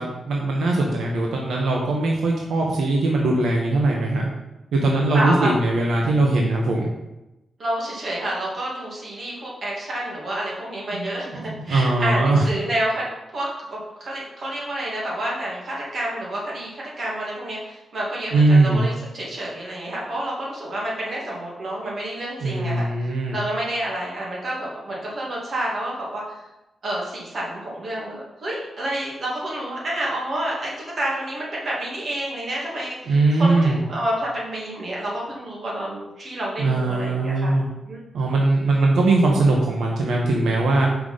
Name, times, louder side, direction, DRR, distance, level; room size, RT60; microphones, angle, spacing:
voice 1, 0.0-4.3 4.7-6.9 10.9-11.1 11.5-12.5 18.3-18.9 22.4-23.4 33.1-33.8 36.6-37.7 38.1-40.9, right 2 dB, 85° right, -1 dB, 1.1 m, -20 dB
voice 2, 5.1-5.6 7.6-13.1 13.3-22.9 23.3-26.2 26.8-37.6 37.8-38.0, right 1 dB, 45° right, -4 dB, 2.3 m, -29 dB
6.0 x 5.0 x 5.6 m, 0.97 s
wide cardioid pair, 155°, 0 cm